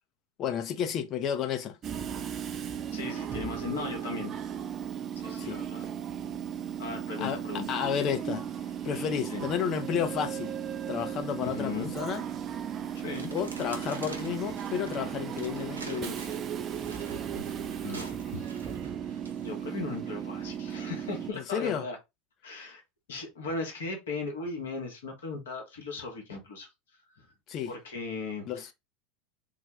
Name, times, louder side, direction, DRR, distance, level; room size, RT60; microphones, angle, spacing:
voice 1, 0.4-1.8 5.4-5.6 7.2-7.4 7.7-8.4 8.8-10.6 10.9-12.2 13.3-16.2 21.3-21.9 27.5-27.7 28.5-28.7, left 8 dB, 45° left, 0.7 m, -31 dB
Train / Subway metro underground, 1.8-21.3, right 8 dB, 40° right, 0.5 m, -36 dB
voice 2, 2.9-4.4 5.2-5.9 6.8-7.7 9.3-9.5 11.4-11.9 13.0-13.3 17.8-18.5 19.1-19.2 19.4-22.0 22.4-22.8 23.1-26.7 27.2-27.3 27.7-28.5, left 3 dB, 75° left, 1.3 m, -37 dB
sound 1, 12.3-12.6 13.1-20.0 20.5-20.7, right 2 dB, 90° right, 0.6 m, -48 dB
3.7 x 2.2 x 3.0 m
hypercardioid pair, 80°, 0 cm